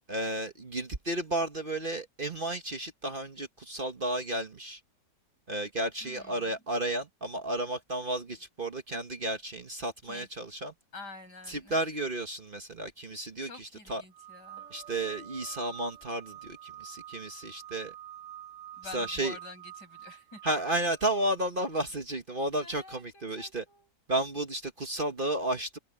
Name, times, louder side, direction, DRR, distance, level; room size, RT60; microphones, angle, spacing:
voice 1, 0.1-4.8 5.5-10.7 11.5-14.0 14.7-17.9 18.9-19.4 20.4-23.6 24.1-25.8, right 1 dB, 35° right, 1.4 m, -33 dB
voice 2, 6.0-6.6 10.0-10.3 10.9-11.8 13.4-14.7 18.8-20.4 22.6-23.9, left 3 dB, 80° left, 8.5 m, -48 dB
sound 1, 14.1-21.9, right 12 dB, 80° right, 1.2 m, -48 dB
sound 2, 14.6-17.2, right 3 dB, 50° right, 4.5 m, -61 dB
omnidirectional pair, 1.8 m